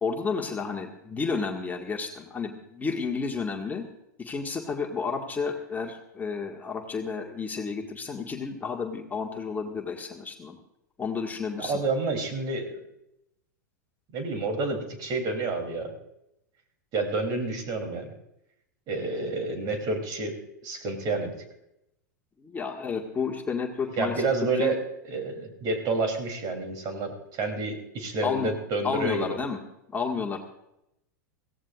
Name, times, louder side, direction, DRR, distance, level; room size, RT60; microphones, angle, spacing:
voice 1, 0.0-3.8 4.2-10.6 11.0-11.8 22.4-24.2 24.6-24.7 28.2-28.5 28.8-29.6 29.9-30.4, left 5 dB, 15° left, 1 dB, 1.9 m, -31 dB
voice 2, 11.6-12.8 14.1-15.9 16.9-18.1 18.9-20.4 20.6-21.4 24.0-24.8 25.1-29.3, right 3 dB, 40° right, 4 dB, 3.3 m, -29 dB
23.0 x 16.5 x 2.5 m, 0.84 s
figure-of-eight pair, 95°, 10 cm